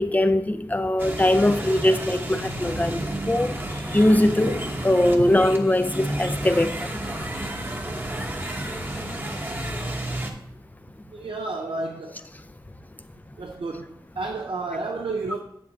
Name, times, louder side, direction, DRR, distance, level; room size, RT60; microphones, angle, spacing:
voice 1, 0.0-3.5 3.9-6.7, left 1 dB, 20° left, 0.5 m, -21 dB
sound 1, 1.0-10.3, right 1 dB, 25° right, 1.0 m, -31 dB
voice 2, 11.1-12.2 13.4-15.4, right 3 dB, 80° right, 0.6 m, -31 dB
7.7 x 7.1 x 2.8 m
wide cardioid pair, 60°, 9 cm